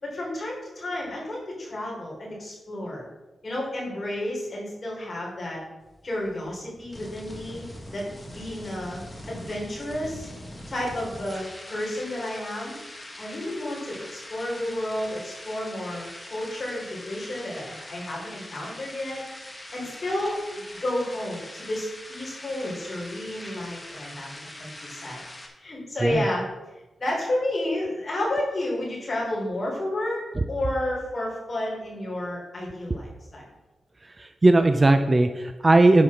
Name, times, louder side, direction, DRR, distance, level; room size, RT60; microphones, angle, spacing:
voice 1, 0.0-3.0 3.4-5.6 6.0-7.7 7.9-10.3 10.7-12.7 13.2-19.2 19.5-20.4 20.8-25.2 25.6-26.5 26.7-30.2 30.5-33.4, left 1 dB, 30° left, -4 dB, 3.8 m, -31 dB
sound 1, 5.8-25.5, left 1 dB, 15° left, 1.6 m, -42 dB
voice 2, 34.2-36.0, right 2 dB, 25° right, 8 dB, 0.5 m, -18 dB
10.5 x 5.5 x 6.4 m, 1.1 s
wide cardioid pair, 165°, 0 cm